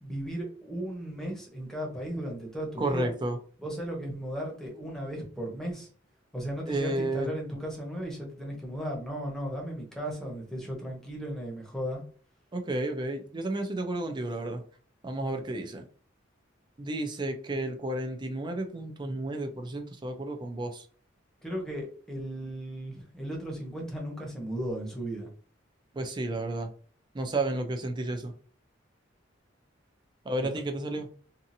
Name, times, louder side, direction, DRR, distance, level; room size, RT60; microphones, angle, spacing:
voice 1, 0.0-3.2 3.6-5.9 6.3-12.0 21.4-25.3, right 1 dB, ahead, 0.8 m, -36 dB
voice 2, 2.8-3.4 6.7-7.3 12.5-14.6 15.0-15.9 16.8-20.9 25.9-26.7 27.1-28.3 30.2-31.1, right 2 dB, 25° right, 0.4 m, -32 dB
2.7 x 2.4 x 2.6 m
head